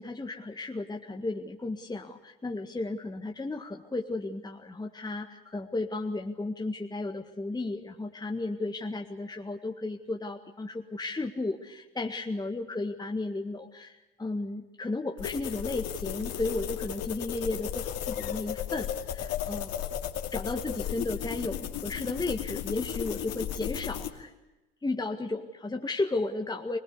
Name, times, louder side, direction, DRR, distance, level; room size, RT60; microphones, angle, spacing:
voice 1, 0.0-20.0 20.3-24.3 24.8-26.8, left 2 dB, 15° left, 3 dB, 1.8 m, -34 dB
sound 1, 15.2-24.1, left 10 dB, 55° left, 2.6 m, -35 dB
22.5 x 20.5 x 8.4 m, 1.0 s
hypercardioid pair, 60°, 29 cm